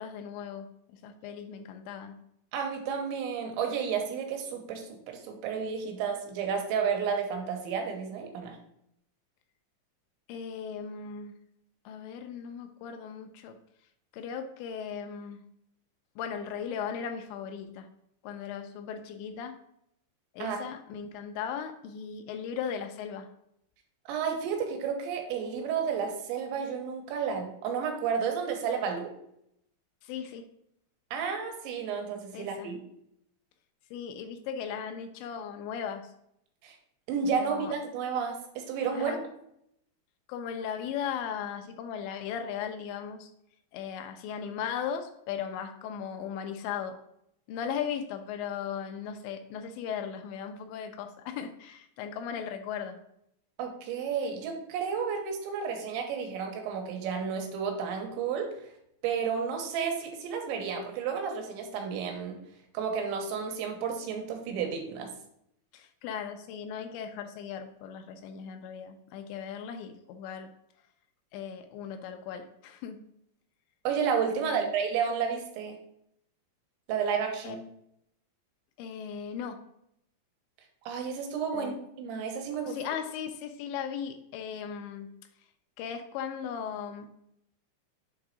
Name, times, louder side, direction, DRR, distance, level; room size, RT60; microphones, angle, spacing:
voice 1, 0.0-2.2 10.3-11.3 11.9-13.6 14.1-15.4 16.2-17.9 18.2-19.6 20.3-23.3 30.0-30.5 32.3-32.7 33.9-36.1 37.4-37.7 38.9-39.2 40.3-43.3 43.7-47.0 47.5-53.0 65.7-70.5 71.3-73.0 74.4-74.7 77.4-77.6 78.8-79.6 81.5-81.8 82.7-85.1 85.8-87.1, left 7 dB, 80° left, 6 dB, 2.8 m, -37 dB
voice 2, 2.5-8.6 20.4-20.6 24.1-29.1 31.1-32.8 36.6-36.8 37.1-39.1 53.6-58.5 59.0-62.4 62.7-65.1 73.8-75.8 76.9-77.6 80.9-82.8, right 6 dB, 85° right, 3 dB, 3.4 m, -31 dB
7.2 x 3.9 x 4.7 m, 0.75 s
omnidirectional pair, 5.2 m